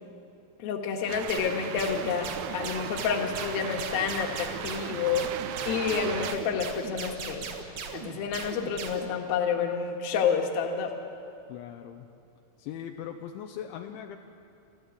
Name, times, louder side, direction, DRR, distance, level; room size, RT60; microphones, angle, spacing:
voice 1, 0.6-2.3 2.5-5.3 5.7-7.5 7.9-10.9, left 6 dB, 60° left, 3 dB, 3.1 m, -29 dB
sound 1, 1.1-6.4, right 11 dB, 80° right, 2.5 m, -38 dB
sound 2, 1.3-9.1, right 5 dB, 55° right, 2.5 m, -38 dB
voice 2, 11.5-12.0 12.6-14.2, left 9 dB, 80° left, 4 dB, 3.1 m, -40 dB
28.5 x 14.0 x 8.3 m, 2.6 s
omnidirectional pair, 5.5 m